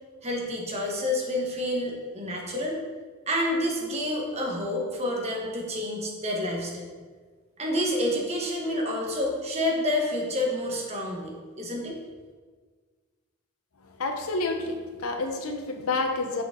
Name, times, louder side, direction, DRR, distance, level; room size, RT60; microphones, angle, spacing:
voice 1, 0.2-2.8 3.3-6.9 7.6-11.3 11.6-12.0, left 1 dB, 30° right, -1 dB, 1.2 m, -28 dB
voice 2, 13.8-16.4, left 3 dB, 85° left, 4 dB, 0.8 m, -29 dB
5.9 x 5.9 x 3.7 m, 1.5 s
head